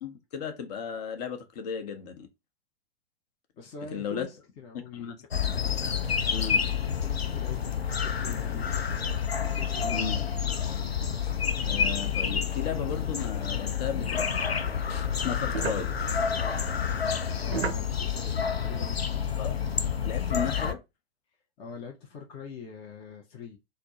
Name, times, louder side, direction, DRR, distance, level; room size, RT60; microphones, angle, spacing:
voice 1, 0.0-2.3 3.9-4.3 4.7-5.2 6.3-6.6 9.9-10.2 11.7-14.3 15.1-15.9 19.4-19.6 20.0-20.8, left 7 dB, 45° left, 0.8 m, -35 dB
voice 2, 3.6-5.1 6.6-10.1 17.4-19.4 21.6-23.6, left 5 dB, 20° left, 0.5 m, -44 dB
sound 1, 5.3-20.7, left 7 dB, 85° left, 0.5 m, -29 dB
sound 2, 14.2-19.2, right 6 dB, 90° right, 0.5 m, -38 dB
4.2 x 2.0 x 2.7 m
figure-of-eight pair, 105°, 30 cm